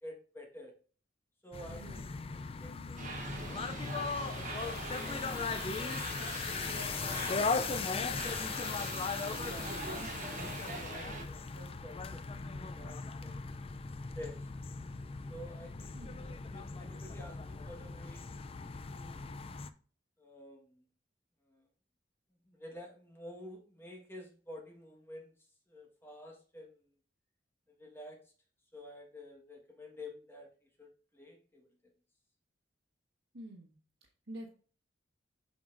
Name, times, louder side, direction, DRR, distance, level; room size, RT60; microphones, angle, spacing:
voice 1, 0.0-0.7 1.4-4.5 5.0-6.3 9.2-13.4 14.1-14.5 15.3-18.2 18.9-19.4 20.2-20.8 21.5-21.7 22.5-25.3 25.7-26.8 27.8-28.2 28.7-30.5 30.8-31.7, left 1 dB, 10° left, 0 dB, 1.4 m, -51 dB
sound 1, 1.5-19.7, left 4 dB, 30° left, 0.4 m, -38 dB
voice 2, 1.7-2.1 15.9-16.2 33.3-33.8 34.3-34.5, right 1 dB, 80° right, -3 dB, 1.3 m, -47 dB
sound 2, 3.0-11.3, right 3 dB, 40° right, 1.2 m, -43 dB
7.7 x 5.4 x 2.5 m, 0.41 s
head